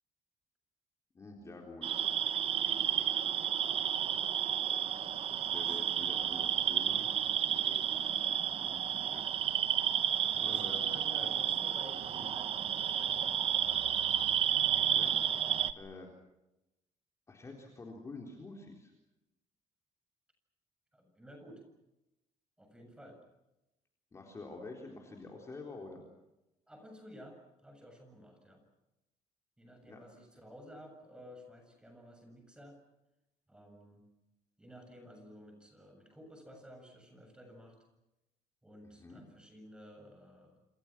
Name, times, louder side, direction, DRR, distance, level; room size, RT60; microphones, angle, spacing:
voice 1, 1.1-2.0 2.7-3.1 5.3-7.1 7.5-7.9 8.6-9.3 10.3-10.9 11.1-11.3 12.1-12.3 14.9-15.2 15.8-16.1 17.3-18.9 24.1-26.1 29.9-30.0 38.8-39.2, left 3 dB, 20° left, 1 dB, 4.0 m, -48 dB
sound 1, 1.8-15.7, right 9 dB, 50° right, 1.1 m, -31 dB
voice 2, 5.5-6.2 10.1-13.9 20.9-21.6 22.6-23.2 26.7-28.6 29.6-32.8 33.5-34.0 34.6-37.8 38.6-40.6, equal, 5° right, 4 dB, 7.5 m, -53 dB
28.0 x 27.5 x 6.1 m, 0.95 s
cardioid pair, 140°, 13 cm